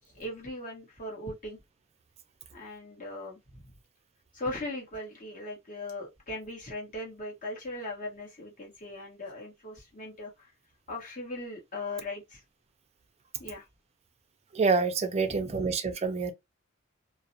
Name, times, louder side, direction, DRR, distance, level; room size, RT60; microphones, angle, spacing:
voice 1, 0.1-1.6 2.5-3.7 4.3-10.5 10.9-12.4 13.4-13.6 15.2-15.7, left 1 dB, 40° left, 1.0 m, -39 dB
voice 2, 14.5-16.3, right 4 dB, 30° right, 0.4 m, -27 dB
2.4 x 2.0 x 2.6 m
head